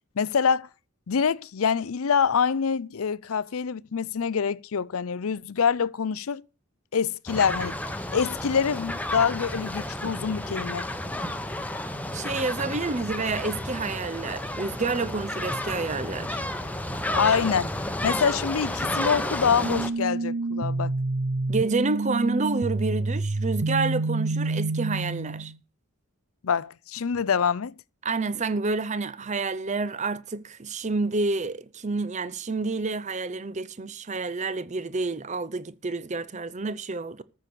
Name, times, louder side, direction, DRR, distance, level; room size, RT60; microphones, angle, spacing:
voice 1, 0.2-0.7 1.1-6.4 6.9-7.8 8.1-10.9 17.1-17.7 18.0-20.9 26.4-27.7, left 6 dB, 75° left, 0.5 m, -25 dB
sound 1, 7.3-19.9, left 1 dB, 5° left, 1.0 m, -31 dB
voice 2, 12.1-16.4 21.5-25.5 28.0-37.2, right 3 dB, 35° right, 0.7 m, -29 dB
sound 2, 19.6-25.6, right 3 dB, 65° right, 0.6 m, -28 dB
14.0 x 6.1 x 6.8 m
head